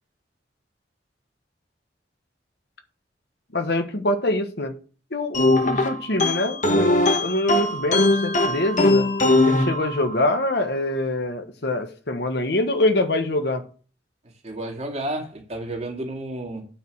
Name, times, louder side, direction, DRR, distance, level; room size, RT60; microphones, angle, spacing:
voice 1, 3.5-4.7 5.1-9.1 9.5-13.7, left 1 dB, 65° left, 1.4 m, -24 dB
sound 1, 5.3-10.4, left 2 dB, 45° left, 1.4 m, -21 dB
voice 2, 14.4-16.7, right 1 dB, 35° right, 2.2 m, -31 dB
9.0 x 5.1 x 6.4 m
head